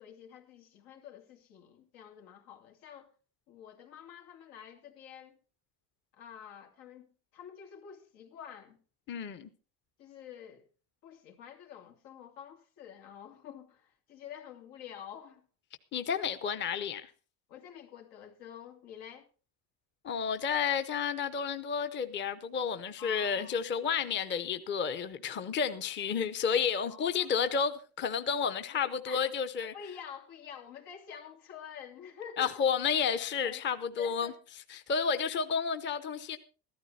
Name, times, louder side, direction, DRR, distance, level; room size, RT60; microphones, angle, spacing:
voice 1, 0.0-3.1 3.5-5.4 6.1-8.8 10.0-10.7 11.0-15.5 17.5-19.3 23.0-23.6 26.9-27.5 28.4-28.6 29.1-29.2 29.6-32.6 33.4-33.6 34.0-34.4, left 8 dB, 85° left, 2.8 m, -48 dB
voice 2, 9.1-9.5 15.9-17.1 20.0-29.7 32.4-34.3 34.7-36.4, left 6 dB, 25° left, 0.7 m, -31 dB
14.0 x 13.0 x 4.2 m
cardioid pair, 135°, 43 cm